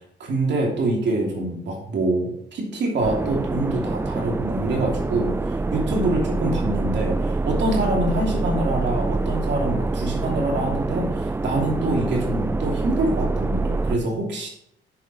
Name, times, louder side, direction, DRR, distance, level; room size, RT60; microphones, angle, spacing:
voice 1, 0.2-14.5, right 2 dB, 65° right, 0 dB, 2.8 m, -25 dB
sound 1, 3.0-14.0, right 3 dB, 10° right, 0.3 m, -25 dB
8.4 x 5.2 x 4.3 m, 0.72 s
cardioid pair, 90°, 20 cm